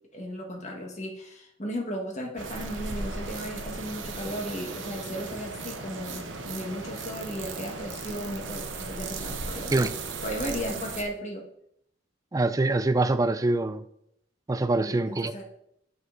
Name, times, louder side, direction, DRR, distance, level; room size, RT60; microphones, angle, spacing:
voice 1, 0.1-9.8 10.2-11.4 14.8-15.4, equal, 40° left, 1.5 m, -35 dB
sound 1, 2.4-11.0, right 3 dB, 90° right, 0.9 m, -36 dB
voice 2, 12.3-13.8 14.5-15.3, right 2 dB, 20° right, 0.3 m, -24 dB
7.9 x 5.4 x 3.9 m
head